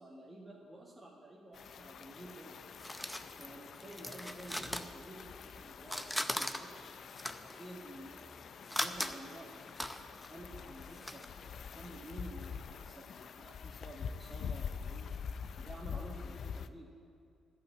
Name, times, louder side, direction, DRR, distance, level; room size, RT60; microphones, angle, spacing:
voice 1, 0.0-2.5 3.2-6.9 7.4-8.3 8.8-9.6 10.2-15.1 15.6-16.9, right 1 dB, 10° right, -3 dB, 1.5 m, -51 dB
sound 1, 1.5-16.7, left 6 dB, 55° left, 0.4 m, -46 dB
sound 2, 2.1-5.5 5.8-11.3, left 1 dB, 5° left, 0.6 m, -40 dB
11.0 x 5.8 x 8.7 m, 2.5 s
cardioid pair, 100°, 0 cm